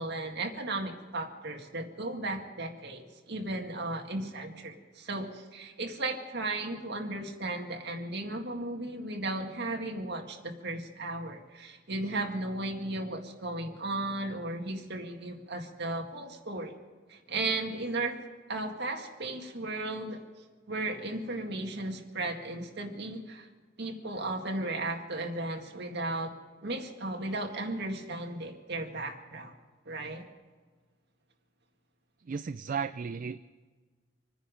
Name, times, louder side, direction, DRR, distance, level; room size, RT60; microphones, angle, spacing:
voice 1, 0.0-16.7 17.1-18.2 18.5-20.2 20.7-23.5 23.8-29.5 29.9-30.3, right 2 dB, 60° right, 2 dB, 2.0 m, -35 dB
voice 2, 32.2-33.4, right 6 dB, 45° right, 11 dB, 0.4 m, -34 dB
26.5 x 10.0 x 5.2 m, 1.4 s
head